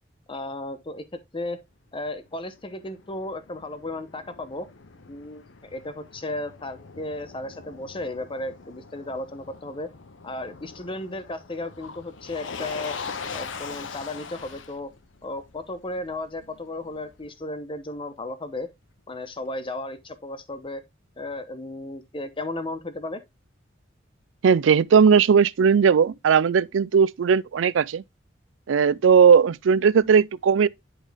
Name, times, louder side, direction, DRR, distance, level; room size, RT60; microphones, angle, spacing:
voice 1, 0.3-1.6 1.9-4.7 5.1-5.4 5.7-9.9 10.2-13.0 13.3-14.9 15.2-18.7 19.1-20.8 21.2-23.2, left 2 dB, 30° left, 0.9 m, -34 dB
Motor vehicle (road), 2.2-17.3, left 5 dB, 90° left, 0.8 m, -42 dB
voice 2, 24.4-28.0 28.7-30.7, right 6 dB, 85° right, 0.4 m, -18 dB
10.5 x 3.6 x 3.5 m
head